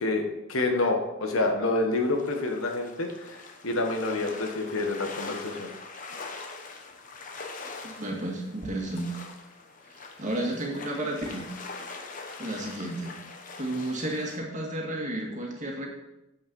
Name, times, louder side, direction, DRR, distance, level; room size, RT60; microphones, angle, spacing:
voice 1, 0.0-3.4 3.6-5.7, left 2 dB, 75° left, 4 dB, 1.4 m, -28 dB
sound 1, 1.9-14.4, left 3 dB, 40° left, 1.0 m, -43 dB
voice 2, 7.8-9.2 9.9-11.5 12.4-13.1 13.6-15.9, right 1 dB, 35° right, -1 dB, 1.9 m, -32 dB
7.8 x 6.5 x 5.4 m, 0.92 s
head